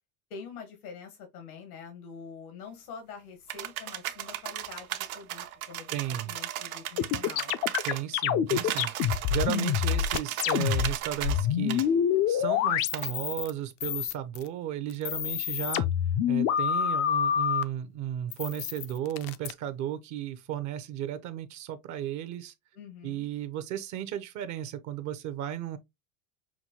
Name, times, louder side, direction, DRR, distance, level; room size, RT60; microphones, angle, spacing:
voice 1, 0.3-6.0 6.2-7.5 22.7-23.3, left 5 dB, 80° left, 1.4 m, -45 dB
sound 1, 3.5-8.0 8.5-11.4 11.7-11.9 12.9-13.1, right 12 dB, 75° right, 0.9 m, -35 dB
voice 2, 5.9-6.4 7.8-11.8 12.3-15.9 16.3-22.5 23.0-25.8, right 11 dB, 40° right, 0.6 m, -34 dB
sound 2, 7.0-10.9 11.2-13.5 13.8-14.5 14.9-17.6 18.3-19.5, left 9 dB, 35° left, 0.4 m, -27 dB
5.9 x 2.2 x 2.9 m
hypercardioid pair, 105°, 43 cm